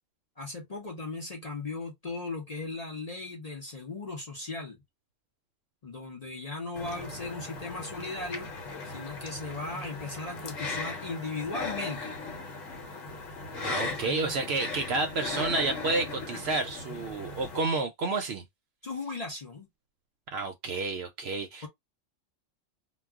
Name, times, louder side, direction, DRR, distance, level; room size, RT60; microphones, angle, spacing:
voice 1, 0.4-4.8 5.8-8.5 8.8-12.2 13.8-14.3 18.8-19.7, left 3 dB, 40° left, 0.6 m, -37 dB
sound 1, 6.8-17.6, left 3 dB, 70° left, 1.1 m, -38 dB
voice 2, 13.5-18.4 20.3-21.7, right 3 dB, 65° right, 0.7 m, -30 dB
2.3 x 2.3 x 3.4 m
omnidirectional pair, 1.3 m